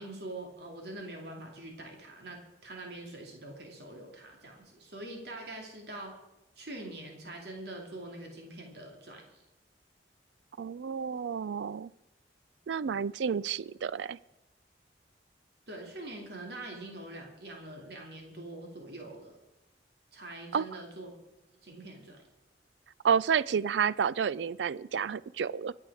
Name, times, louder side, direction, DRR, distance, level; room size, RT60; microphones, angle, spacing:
voice 1, 0.0-6.2 6.6-9.4 15.7-19.4 20.1-21.1 21.6-22.2, right 2 dB, 65° right, 1 dB, 2.7 m, -44 dB
voice 2, 10.6-11.9 12.7-14.2 20.5-20.7 23.0-25.7, right 7 dB, 90° right, 19 dB, 0.4 m, -30 dB
24.0 x 8.6 x 4.9 m, 0.96 s
head